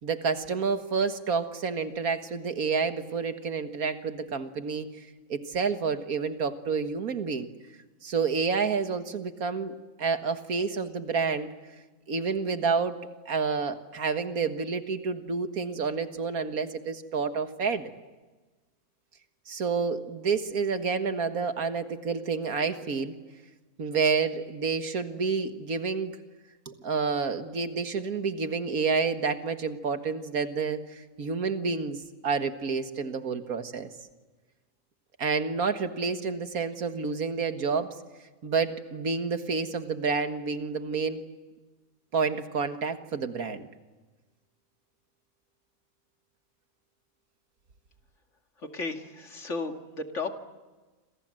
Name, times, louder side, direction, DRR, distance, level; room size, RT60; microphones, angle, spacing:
voice 1, 0.0-7.5 8.0-11.5 12.1-13.0 13.3-17.9 19.5-23.1 23.8-26.1 26.7-33.9 35.2-37.9 38.4-41.2 42.1-43.7, right 5 dB, 85° right, 8 dB, 2.0 m, -29 dB
voice 2, 48.6-50.4, left 3 dB, 55° left, 5 dB, 2.5 m, -34 dB
28.5 x 26.0 x 7.7 m, 1.3 s
omnidirectional pair, 1.5 m